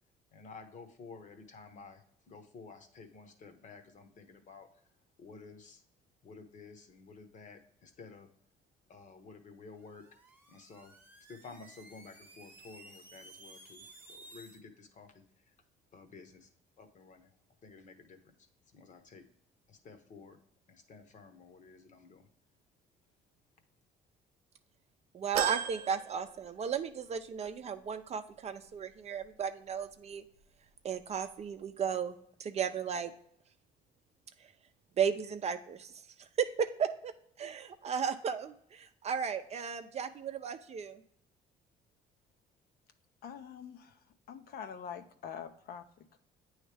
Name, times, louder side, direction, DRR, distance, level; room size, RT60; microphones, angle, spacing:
voice 1, 0.3-4.7 5.2-5.8 6.2-8.3 8.9-10.1 10.5-11.0 11.3-15.5 15.9-16.5 16.8-17.3 17.6-18.3 18.7-19.2 19.7-20.4 20.7-22.3, left 4 dB, 45° left, 7 dB, 1.0 m, -52 dB
sound 1, 9.8-14.6, right 2 dB, 10° right, 1.0 m, -55 dB
voice 2, 25.1-30.2 30.8-33.1 35.0-35.9 36.2-37.1 37.4-41.0, right 7 dB, 40° right, 9 dB, 0.5 m, -35 dB
sound 2, 25.3-27.0 27.4-27.5 28.7-28.8, right 9 dB, 85° right, 0.6 m, -36 dB
voice 3, 43.2-46.2, left 7 dB, 65° left, 8 dB, 0.7 m, -45 dB
8.9 x 3.2 x 3.3 m, 0.68 s
cardioid pair, 110°, 17 cm